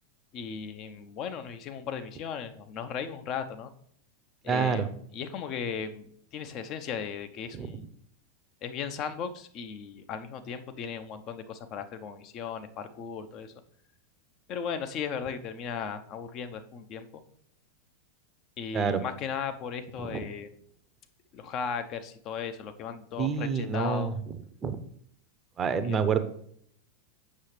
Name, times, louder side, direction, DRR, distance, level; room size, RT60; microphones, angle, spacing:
voice 1, 0.3-3.7 4.4-6.1 6.3-7.9 8.6-13.5 14.5-17.0 18.6-20.6 21.3-24.1 25.8-26.0, left 7 dB, 40° left, 9 dB, 0.7 m, -36 dB
voice 2, 4.5-4.9 7.5-7.8 18.7-19.0 20.0-20.3 23.2-24.1 24.6-24.8 25.6-26.2, right 6 dB, 25° right, 11 dB, 0.6 m, -27 dB
7.5 x 6.3 x 3.2 m, 0.65 s
figure-of-eight pair, 90°, 0 cm